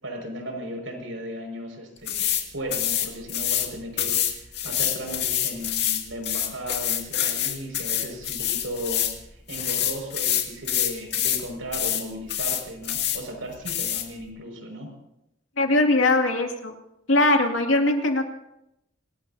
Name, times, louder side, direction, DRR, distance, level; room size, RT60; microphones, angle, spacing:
voice 1, 0.0-14.9, equal, 85° right, 2 dB, 5.7 m, -36 dB
sound 1, 2.1-2.4 2.7-3.7 4.0-9.2 9.5-11.4 11.7-12.0 12.3-13.2 13.7-14.0, left 10 dB, 60° left, 2.3 m, -26 dB
voice 2, 15.6-16.7 17.1-18.3, left 2 dB, 90° left, 3 dB, 2.4 m, -21 dB
25.5 x 20.0 x 2.8 m, 0.86 s
head